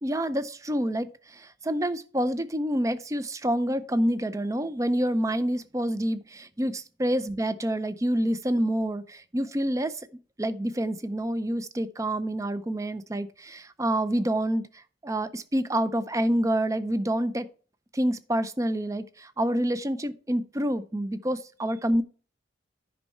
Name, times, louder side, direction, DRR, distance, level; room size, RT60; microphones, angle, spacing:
voice 1, 0.0-9.9 10.4-17.5 17.9-22.0, right 1 dB, 15° right, 0.5 m, -27 dB
10.5 x 5.4 x 4.3 m
head